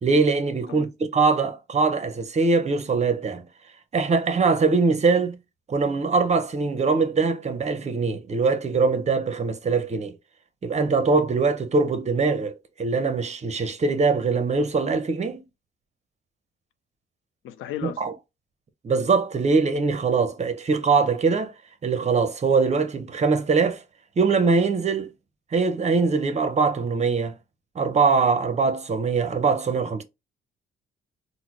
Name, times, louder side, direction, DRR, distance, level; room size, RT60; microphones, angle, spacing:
voice 1, 0.0-3.4 3.9-5.4 5.7-10.1 10.6-15.4 17.8-18.1 18.8-21.5 21.8-23.8 24.2-25.1 25.5-27.4 27.8-30.0, right 4 dB, 35° right, 0.7 m, -22 dB
voice 2, 17.4-18.0, left 11 dB, 85° left, 0.5 m, -34 dB
4.0 x 2.1 x 2.9 m
cardioid pair, 90°, 20 cm